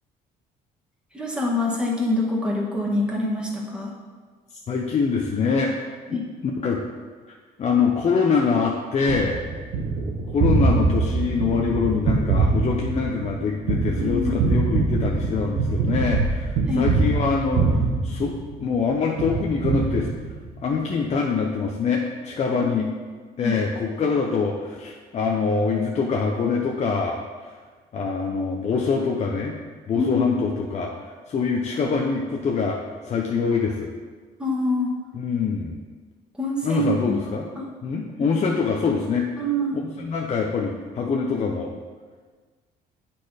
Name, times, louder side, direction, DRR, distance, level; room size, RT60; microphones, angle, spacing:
voice 1, 1.1-3.9 6.1-6.2 13.9-14.4 16.7-16.9 22.5-22.8 23.4-23.6 29.9-30.4 34.4-34.9 36.4-37.7 39.4-39.8, left 1 dB, 5° right, -3 dB, 1.6 m, -25 dB
voice 2, 4.7-5.8 6.1-6.8 7.3-9.4 10.3-20.1 20.6-22.9 23.4-27.5 27.9-29.6 29.9-32.8 33.0-33.9 35.1-35.7 36.6-37.5 37.8-39.3 39.7-41.7, left 5 dB, 40° left, 0 dB, 0.7 m, -24 dB
Gunshot gunfire, 9.1-18.8 19.2-20.6, right 4 dB, 85° right, 1.2 m, -23 dB
8.3 x 4.3 x 4.9 m, 1.5 s
cardioid pair, 110°, 17 cm